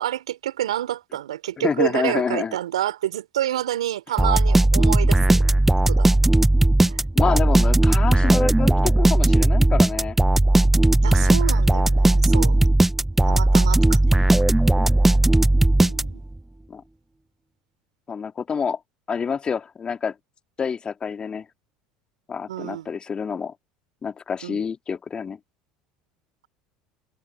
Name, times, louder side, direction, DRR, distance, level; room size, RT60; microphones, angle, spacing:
voice 1, 0.0-5.4 5.9-6.1 6.8-7.0 11.0-12.6 13.2-14.2 15.8-16.2 22.5-22.9 24.4-24.6, right 12 dB, 85° right, 3.6 m, -28 dB
voice 2, 1.6-2.6 7.1-10.2 12.5-12.7 14.8-14.9 16.7-16.8 18.1-18.8 19.1-20.1 20.6-21.5 22.3-23.5 24.0-25.4, left 6 dB, 30° left, 2.8 m, -27 dB
sound 1, 4.2-16.4, right 1 dB, 10° right, 0.9 m, -17 dB
hypercardioid pair, 75°, 3 cm